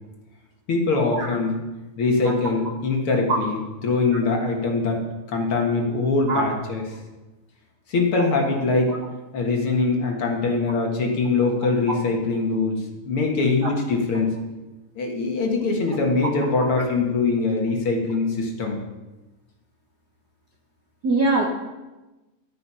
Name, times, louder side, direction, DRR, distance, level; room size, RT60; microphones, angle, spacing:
voice 1, 0.7-1.6 2.0-6.8 7.9-9.0 9.3-14.4 15.0-18.8, left 3 dB, 50° left, 1 dB, 2.2 m, -23 dB
voice 2, 21.0-21.5, right 3 dB, 65° right, 1 dB, 1.0 m, -21 dB
12.0 x 9.3 x 5.6 m, 1.1 s
omnidirectional pair, 3.5 m